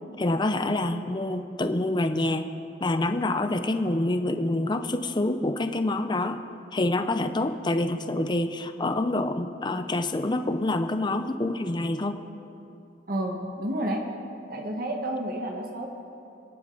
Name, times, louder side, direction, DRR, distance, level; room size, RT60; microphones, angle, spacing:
voice 1, 0.2-2.5 2.8-6.4 6.7-12.2, left 2 dB, 25° left, 9 dB, 0.6 m, -27 dB
voice 2, 13.1-14.0 14.5-15.9, right 1 dB, 50° right, 2 dB, 1.4 m, -30 dB
27.5 x 10.5 x 3.9 m, 2.7 s
head